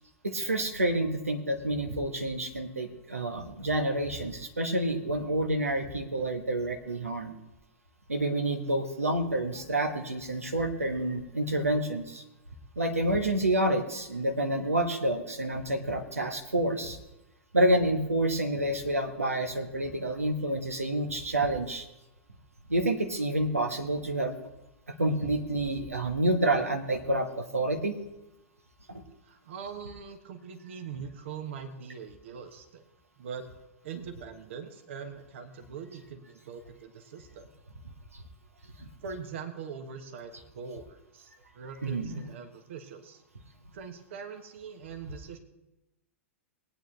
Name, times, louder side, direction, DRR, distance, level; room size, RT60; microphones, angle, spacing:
voice 1, 0.2-7.3 8.1-12.2 12.8-17.0 17.5-21.9 22.7-24.3 24.9-28.0 28.9-29.0 41.8-42.2, right 1 dB, 85° right, 5 dB, 1.5 m, -28 dB
voice 2, 13.1-13.5 29.2-32.8 33.2-33.5 33.8-37.5 38.6-43.2 43.7-45.4, right 6 dB, 60° right, 7 dB, 1.4 m, -42 dB
20.0 x 9.2 x 3.3 m, 0.95 s
figure-of-eight pair, 105°, 8 cm